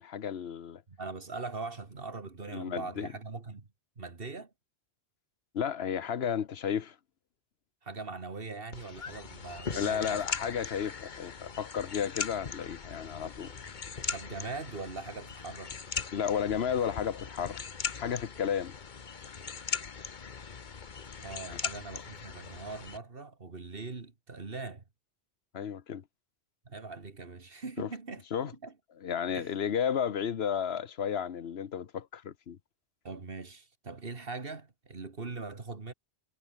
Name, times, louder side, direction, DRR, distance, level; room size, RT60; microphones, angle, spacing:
voice 1, 0.0-0.8 2.5-3.1 5.5-6.9 9.7-13.5 16.1-17.6 18.0-18.7 21.5-21.6 25.5-26.0 27.8-27.9 28.3-28.5 29.0-32.6, left 8 dB, 75° left, 1.2 m, -33 dB
voice 2, 0.9-3.7 4.0-4.5 7.8-10.2 13.6-13.8 14.1-15.7 21.2-24.8 26.7-28.2 28.6-28.7 29.3-29.5 33.0-35.9, right 3 dB, 60° right, 2.3 m, -41 dB
sound 1, 8.7-23.0, left 5 dB, 50° left, 1.2 m, -40 dB
omnidirectional pair, 1.1 m